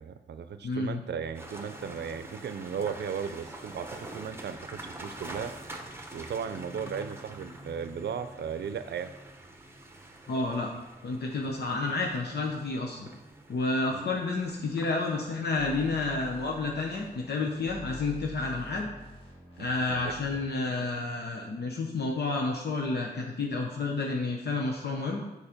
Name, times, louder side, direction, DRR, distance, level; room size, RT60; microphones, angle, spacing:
voice 1, 0.0-4.6 4.8-5.5 6.1-9.1 13.9-14.1 19.6-20.1, right 7 dB, 75° right, 10 dB, 0.5 m, -36 dB
voice 2, 0.6-1.0 10.3-10.7 11.0-13.1 13.5-18.9 19.6-25.2, left 3 dB, 65° left, 1 dB, 0.8 m, -30 dB
sound 1, 1.3-18.5, right 1 dB, 15° right, 0.9 m, -46 dB
sound 2, 15.6-20.4, equal, 30° left, 1.8 m, -47 dB
7.2 x 4.8 x 5.1 m, 1.1 s
wide cardioid pair, 120°, 18 cm